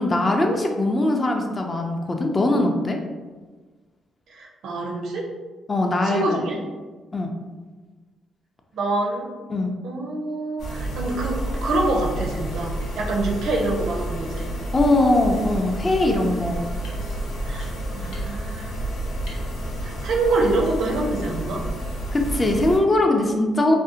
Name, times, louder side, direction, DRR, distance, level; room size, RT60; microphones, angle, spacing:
voice 1, 0.0-3.0 5.7-6.4 7.1-7.3 9.5-9.7 14.7-16.6 22.1-23.8, left 2 dB, 25° left, 2 dB, 0.4 m, -21 dB
voice 2, 4.3-5.2 6.0-6.6 8.7-9.3 9.8-14.5 17.4-18.7 19.8-21.6, right 2 dB, 75° right, -1 dB, 0.5 m, -26 dB
sound 1, 10.6-22.8, right 1 dB, 90° left, 0.6 m, -30 dB
2.6 x 2.0 x 2.7 m, 1.3 s
cardioid pair, 90°, 0 cm